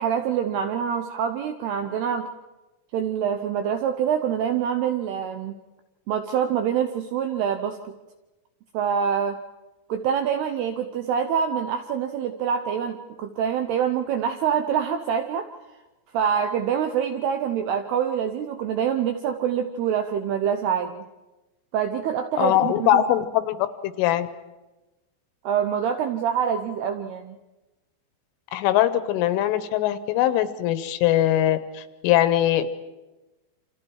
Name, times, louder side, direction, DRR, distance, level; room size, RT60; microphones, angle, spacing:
voice 1, 0.0-2.3 2.9-5.5 6.1-7.9 8.7-9.4 9.9-15.5 16.1-21.0 21.7-23.0 25.4-27.4, right 8 dB, 80° right, 6 dB, 2.4 m, -25 dB
voice 2, 22.4-23.6 23.8-24.3 28.5-32.7, left 12 dB, 80° left, 12 dB, 3.4 m, -21 dB
28.5 x 26.5 x 4.7 m, 1.1 s
omnidirectional pair, 5.7 m